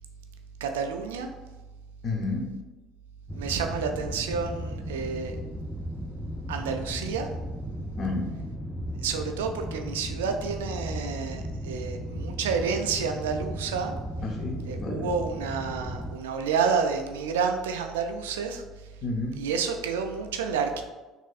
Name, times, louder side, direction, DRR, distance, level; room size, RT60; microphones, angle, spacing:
voice 1, 0.6-1.3 3.3-5.4 6.5-7.3 9.0-13.9 14.7-18.6 19.3-20.8, right 6 dB, 90° right, 5 dB, 0.3 m, -29 dB
voice 2, 2.0-2.5 8.0-8.3 14.2-15.1 19.0-19.3, left 3 dB, 50° left, 0 dB, 0.8 m, -31 dB
sound 1, 3.3-16.2, equal, 5° left, 0.4 m, -36 dB
4.0 x 2.6 x 2.4 m, 1.2 s
hypercardioid pair, 70°, 0 cm